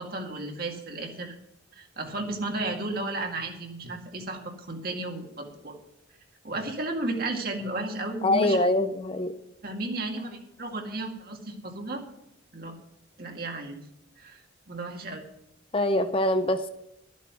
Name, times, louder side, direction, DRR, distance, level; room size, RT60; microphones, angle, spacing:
voice 1, 0.0-1.4 1.7-5.8 6.4-8.6 9.6-12.0 12.5-12.8 13.2-13.8 14.2-15.2, right 2 dB, 50° right, 2 dB, 2.0 m, -33 dB
voice 2, 8.2-9.3 15.7-16.7, left 1 dB, 30° left, 9 dB, 0.6 m, -24 dB
13.0 x 8.3 x 6.1 m, 0.80 s
head